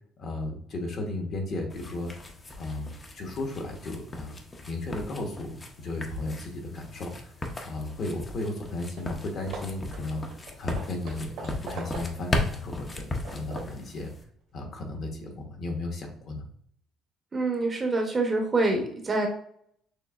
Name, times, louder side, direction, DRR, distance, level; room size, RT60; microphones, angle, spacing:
voice 1, 0.2-2.1 2.6-4.4 4.7-7.3 7.6-10.3 10.6-14.1 14.5-16.5, left 2 dB, 45° left, 2 dB, 1.0 m, -34 dB
sound 1, 1.7-14.2, left 2 dB, 20° left, 0.6 m, -37 dB
Hammer / Wood, 8.6-8.7 9.0-9.2 9.5-12.4 12.9-13.9, right 3 dB, 75° right, 1.2 m, -42 dB
voice 2, 17.3-19.3, right 2 dB, 25° right, 2 dB, 0.7 m, -26 dB
6.3 x 2.5 x 2.4 m, 0.65 s
cardioid pair, 145°, 0 cm